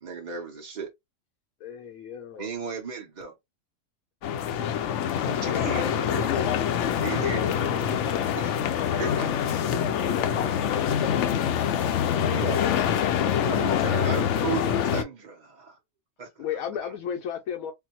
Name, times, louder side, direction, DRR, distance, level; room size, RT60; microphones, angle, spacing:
voice 1, 0.0-0.9 2.4-3.3 5.4-6.4 7.0-8.5 9.0-9.4 11.1-11.3 12.3-12.6 13.2-15.8 16.2-16.5 16.8-16.9, right 6 dB, 50° right, 0.6 m, -36 dB
voice 2, 1.6-2.5 5.2-6.5 16.4-17.7, left 8 dB, 85° left, 1.1 m, -34 dB
sound 1, 4.2-15.0, left 9 dB, 65° left, 0.8 m, -25 dB
voice 3, 5.4-6.2 9.5-13.5, left 8 dB, 45° left, 0.4 m, -42 dB
3.7 x 2.1 x 2.7 m
omnidirectional pair, 1.5 m